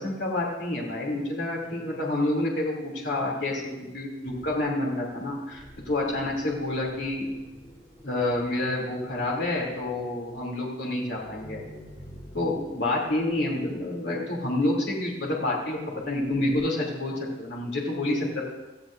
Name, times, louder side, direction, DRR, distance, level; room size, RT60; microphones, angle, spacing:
voice 1, 0.0-7.3 8.0-11.6 12.3-18.4, left 1 dB, 75° left, -3 dB, 2.9 m, -28 dB
sound 1, 4.3-16.6, equal, 35° left, 4.6 m, -49 dB
17.5 x 14.0 x 2.6 m, 1.1 s
head